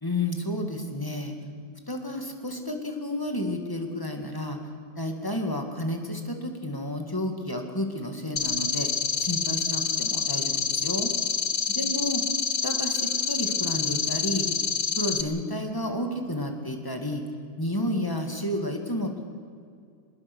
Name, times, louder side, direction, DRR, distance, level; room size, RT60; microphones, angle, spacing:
voice 1, 0.0-1.3 1.9-4.6 5.0-8.9 9.2-11.1 11.7-12.2 12.6-14.5 15.0-17.2 17.6-19.2, left 1 dB, 10° left, 4 dB, 2.2 m, -31 dB
sound 1, 8.4-15.2, left 6 dB, 45° left, 0.6 m, -27 dB
25.0 x 20.5 x 6.3 m, 2.3 s
omnidirectional pair, 2.2 m